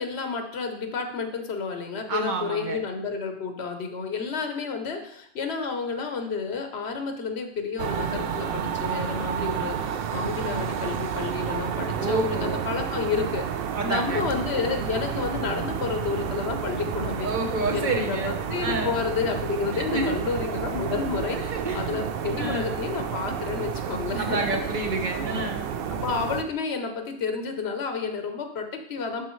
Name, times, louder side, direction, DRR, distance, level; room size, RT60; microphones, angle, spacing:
voice 1, 0.0-13.5 13.8-17.3 17.7-24.5 25.1-25.5 25.9-29.2, left 5 dB, 70° left, 5 dB, 1.2 m, -30 dB
voice 2, 2.1-2.9 11.9-12.6 13.7-14.3 17.2-18.3 18.6-18.9 19.7-20.2 21.3-22.0 22.4-22.6 24.2-25.7, right 2 dB, 45° right, 2 dB, 1.1 m, -29 dB
sound 1, 7.8-26.4, right 8 dB, 65° right, 0.7 m, -30 dB
12.0 x 4.2 x 3.2 m, 0.72 s
omnidirectional pair, 1.1 m